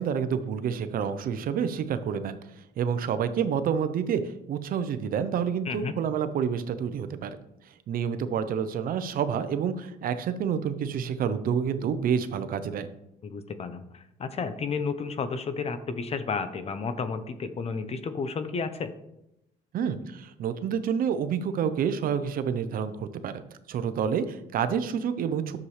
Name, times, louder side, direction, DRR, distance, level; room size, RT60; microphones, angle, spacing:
voice 1, 0.0-2.4 2.8-4.2 4.5-7.4 7.9-12.9 19.7-23.4 23.7-25.6, right 7 dB, 60° right, 11 dB, 0.7 m, -28 dB
voice 2, 13.2-18.9, left 5 dB, 40° left, 11 dB, 0.8 m, -32 dB
10.5 x 7.1 x 3.3 m, 0.84 s
cardioid pair, 110°, 17 cm